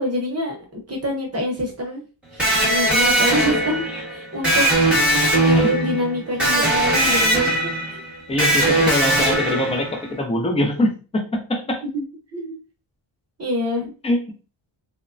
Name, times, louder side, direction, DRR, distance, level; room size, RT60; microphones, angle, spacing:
voice 1, 0.0-2.0 2.3-3.9 4.1-5.0 5.3-7.5 7.9-8.0 11.9-12.0 12.3-12.6 13.4-13.9, left 1 dB, 30° right, 0.7 m, -26 dB
Electric guitar, 2.4-10.1, right 1 dB, ahead, 0.9 m, -20 dB
voice 2, 8.3-11.8 14.0-14.2, left 1 dB, 15° left, 0.4 m, -23 dB
3.0 x 2.1 x 2.4 m
wide cardioid pair, 165°, 47 cm